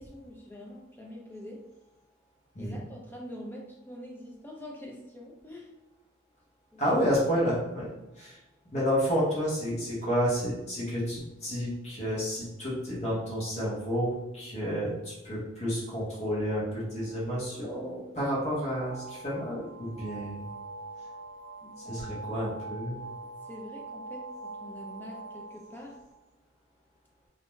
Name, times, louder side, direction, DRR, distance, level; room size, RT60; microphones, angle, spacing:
voice 1, 0.0-1.6 2.6-5.7 6.7-6.9 21.6-22.1 23.4-26.0, equal, 10° left, -2 dB, 0.4 m, -45 dB
voice 2, 6.8-7.9 8.1-8.4 8.7-20.5 21.8-23.0, equal, 35° left, -7 dB, 0.9 m, -30 dB
sound 1, 18.6-26.1, right 3 dB, 70° right, 0.3 m, -43 dB
2.4 x 2.1 x 3.0 m, 1.0 s
head